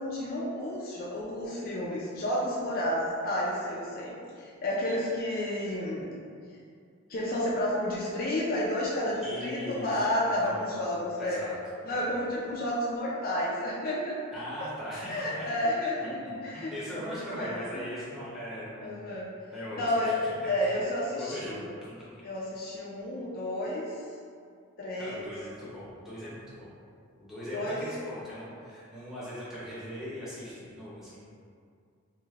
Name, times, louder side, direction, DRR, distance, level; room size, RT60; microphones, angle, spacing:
voice 1, 0.0-6.1 7.1-11.4 11.8-14.2 15.1-16.0 16.4-17.8 18.8-19.2 19.8-20.2 20.4-21.5 22.2-23.9 24.8-25.3 27.5-27.8, left 1 dB, 45° left, -6 dB, 0.4 m, -31 dB
voice 2, 9.2-10.1 10.3-10.7 11.2-11.6 11.9-12.1 14.3-15.5 16.3-19.1 19.5-20.6 21.1-22.0 25.0-26.7 27.2-31.2, equal, ahead, -10 dB, 0.7 m, -40 dB
3.1 x 2.6 x 2.4 m, 2.3 s
head